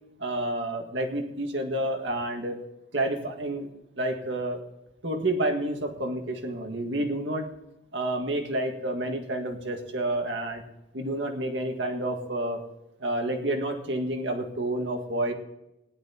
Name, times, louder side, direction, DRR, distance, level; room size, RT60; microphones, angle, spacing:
voice 1, 0.2-2.6 2.9-3.7 4.0-4.6 5.0-7.5 7.9-10.6 10.9-12.6 13.0-15.3, right 1 dB, 70° right, 3 dB, 2.0 m, -29 dB
19.0 x 11.5 x 3.0 m, 0.93 s
head